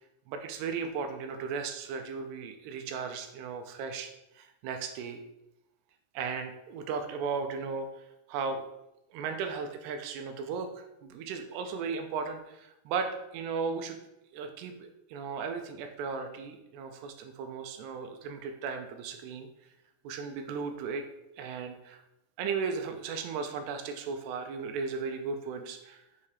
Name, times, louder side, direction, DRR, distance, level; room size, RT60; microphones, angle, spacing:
voice 1, 0.3-4.1 4.3-5.2 6.1-8.7 9.1-14.0 14.3-19.5 20.0-21.0 21.4-22.0 22.4-26.0, right 5 dB, 85° right, 6 dB, 2.5 m, -36 dB
7.1 x 2.8 x 4.8 m, 0.88 s
omnidirectional pair, 4.8 m